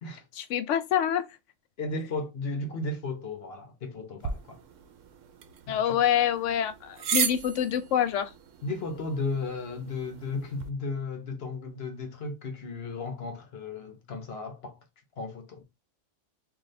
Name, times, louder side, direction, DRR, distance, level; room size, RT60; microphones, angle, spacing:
voice 1, 0.4-1.2 5.7-8.3, left 9 dB, 80° left, 0.9 m, -26 dB
voice 2, 1.8-4.6 5.7-6.0 8.6-14.8 15.2-15.6, left 3 dB, 60° left, 1.0 m, -35 dB
sound 1, 4.2-10.7, right 7 dB, 85° right, 1.0 m, -36 dB
3.2 x 2.7 x 4.0 m
omnidirectional pair, 1.3 m